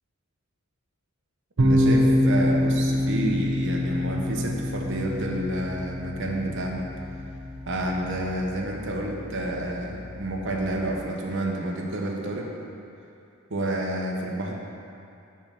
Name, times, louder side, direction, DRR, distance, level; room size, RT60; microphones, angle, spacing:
voice 1, 1.6-6.9 7.7-12.5 13.5-14.5, right 1 dB, 60° right, 0 dB, 0.9 m, -29 dB
sound 1, 1.6-11.0, left 1 dB, 85° right, 0.8 m, -26 dB
7.0 x 4.3 x 5.9 m, 2.7 s
head